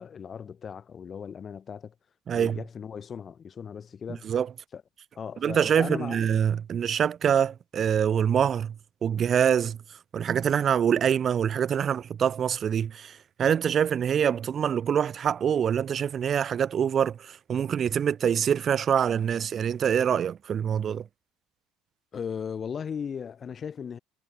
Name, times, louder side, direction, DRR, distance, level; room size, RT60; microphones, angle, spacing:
voice 1, 0.0-1.9 2.3-4.3 4.7-4.8 5.2-6.2 22.1-24.0, left 7 dB, 25° left, 1.2 m, -37 dB
voice 2, 2.3-2.6 4.2-4.5 5.4-8.7 9.0-9.8 10.1-21.0, right 8 dB, 25° right, 0.5 m, -25 dB
cardioid pair, 165°, 0 cm